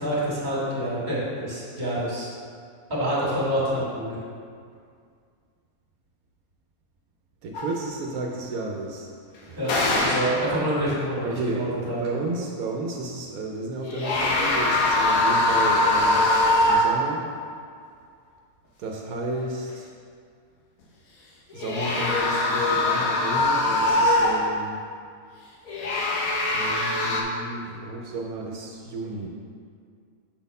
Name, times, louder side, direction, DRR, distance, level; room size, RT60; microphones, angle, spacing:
voice 1, 0.0-2.3 2.9-4.2 9.6-9.7 10.0-12.0, right 1 dB, 30° right, -7 dB, 2.0 m, -27 dB
voice 2, 7.4-9.1 9.4-10.2 11.2-16.3 16.6-17.3 18.8-19.9 21.5-24.8 26.5-29.3, right 2 dB, 85° right, 0 dB, 1.1 m, -32 dB
sound 1, 7.5-7.8 9.6-10.5 13.8-17.1 21.5-24.6 25.7-27.2, left 1 dB, 80° left, 1.3 m, -22 dB
6.2 x 4.1 x 5.3 m, 2.2 s
omnidirectional pair, 1.5 m